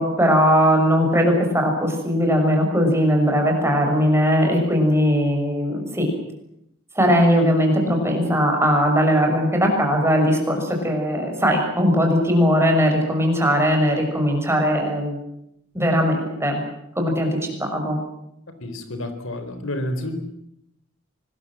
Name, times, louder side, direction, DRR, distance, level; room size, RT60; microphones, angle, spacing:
voice 1, 0.0-6.1 6.9-15.2 15.7-16.6 16.9-18.0, equal, 15° right, 2 dB, 6.5 m, -19 dB
voice 2, 18.6-20.2, left 1 dB, 70° left, 9 dB, 4.4 m, -29 dB
25.5 x 21.0 x 7.7 m, 0.79 s
head